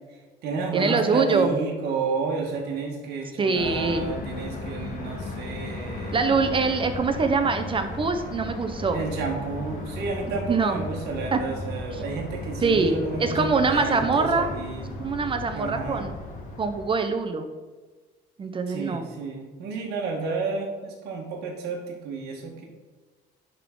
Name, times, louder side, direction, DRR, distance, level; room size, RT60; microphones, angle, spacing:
voice 1, 0.1-6.2 8.9-14.9 15.5-16.1 18.7-22.6, right 4 dB, 75° right, 0 dB, 1.4 m, -31 dB
voice 2, 0.7-1.5 3.4-4.1 6.1-9.0 10.5-10.8 11.3-11.4 11.9-12.0 12.6-14.5 15.0-16.1 16.6-17.5 18.4-19.1, right 4 dB, 30° right, 7 dB, 0.6 m, -24 dB
sound 1, 3.5-16.9, left 2 dB, 55° left, 1.4 m, -35 dB
10.5 x 3.6 x 3.8 m, 1.4 s
cardioid pair, 110°, 17 cm